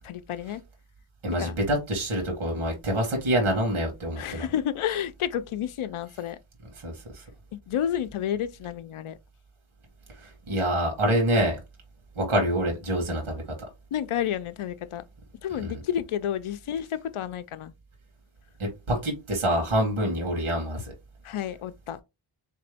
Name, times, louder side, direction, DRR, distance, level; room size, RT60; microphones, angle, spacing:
voice 1, 0.0-0.6 1.4-1.5 4.2-6.4 7.5-9.2 13.9-15.0 15.4-17.7 21.2-22.0, left 10 dB, 80° left, 0.6 m, -30 dB
voice 2, 1.2-4.4 6.8-7.2 10.2-11.6 12.1-13.4 15.5-15.8 18.6-20.9, equal, 75° right, 1.7 m, -26 dB
3.8 x 3.4 x 3.4 m
wide cardioid pair, 105°, 50 cm